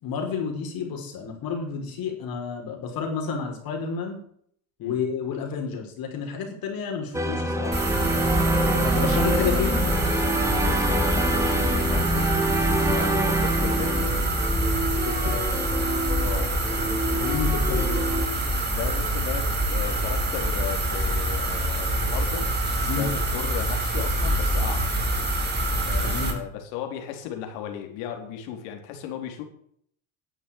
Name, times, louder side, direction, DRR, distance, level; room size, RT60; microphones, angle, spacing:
voice 1, 0.0-4.2 4.8-8.0 8.7-10.0 15.0-15.4 17.2-18.0 22.9-23.1 26.0-26.4, left 5 dB, 55° left, 2 dB, 5.6 m, -30 dB
sound 1, 7.1-18.3, right 2 dB, 5° right, 2.3 m, -26 dB
sound 2, 7.7-26.3, right 1 dB, 25° right, 4.6 m, -25 dB
voice 2, 8.3-9.2 9.5-12.3 12.8-14.1 15.2-18.2 18.7-22.5 22.8-24.9 25.9-29.4, left 9 dB, 75° left, 4 dB, 4.1 m, -36 dB
11.5 x 8.4 x 9.2 m, 0.65 s
supercardioid pair, 105°, 43 cm